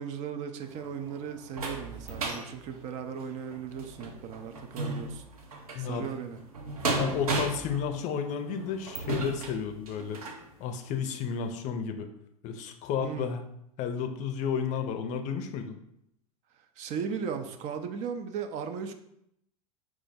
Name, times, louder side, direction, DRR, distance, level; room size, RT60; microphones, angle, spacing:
voice 1, 0.0-5.2 5.8-6.4 13.0-13.3 16.8-18.9, right 7 dB, 40° right, 6 dB, 0.4 m, -37 dB
sound 1, 0.6-10.5 11.0-11.1 11.5-11.6, right 2 dB, 80° right, 0.7 m, -35 dB
voice 2, 5.7-6.1 7.0-10.2 10.6-12.1 12.4-13.4 13.8-15.8, left 7 dB, 40° left, 7 dB, 0.5 m, -32 dB
4.6 x 2.1 x 4.1 m, 0.76 s
hypercardioid pair, 90°, 18 cm